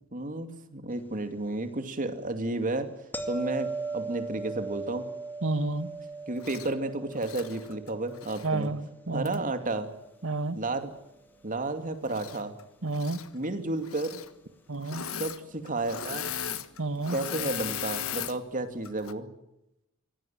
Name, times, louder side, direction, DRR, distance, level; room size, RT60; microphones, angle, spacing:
voice 1, 0.1-2.9 3.3-3.7 3.9-5.0 6.3-8.7 9.1-9.9 10.5-10.9 11.4-12.5 13.3-14.2 15.2-16.3 17.1-19.3, right 2 dB, 40° right, 8 dB, 2.6 m, -32 dB
sound 1, 3.1-10.1 15.4-15.6, right 3 dB, 10° left, 2.2 m, -39 dB
voice 2, 5.4-5.9 8.4-9.4 10.2-10.6 12.8-13.2 14.7-15.1 16.8-17.2, right 3 dB, 70° right, 13 dB, 1.5 m, -30 dB
Engine / Mechanisms, 6.4-6.7 7.1-8.5 9.3-9.4 12.1-12.6 12.9-13.3 13.8-14.3 14.8-15.4 15.7-18.4 18.9-19.1, left 9 dB, 90° left, 1.4 m, -37 dB
24.5 x 17.5 x 9.1 m, 0.87 s
head